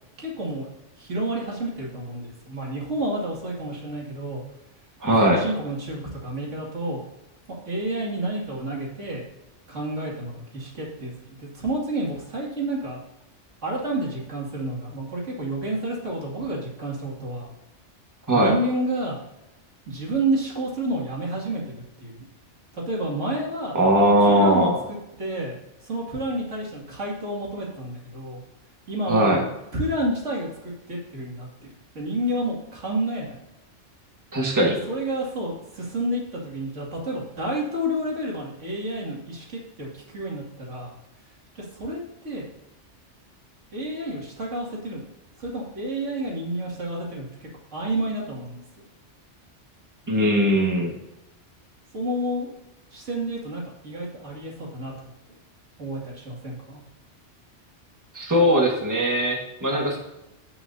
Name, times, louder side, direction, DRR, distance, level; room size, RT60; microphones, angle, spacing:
voice 1, 0.2-0.7 1.0-4.4 5.2-7.0 7.7-9.2 9.7-13.0 13.6-17.5 18.3-19.2 19.9-22.2 22.7-23.8 24.2-25.5 25.8-28.4 28.9-31.7 31.9-33.4 34.9-41.0 41.5-42.5 43.7-45.0 45.4-48.6 51.9-52.5 52.9-54.9 55.8-56.8, right 1 dB, 85° right, -3 dB, 2.8 m, -30 dB
voice 2, 5.0-5.4 18.3-18.6 23.7-24.8 29.1-29.4 34.3-34.8 50.1-50.9 58.1-60.0, equal, 15° right, -1 dB, 1.6 m, -20 dB
16.5 x 5.8 x 2.8 m, 0.92 s
omnidirectional pair, 1.2 m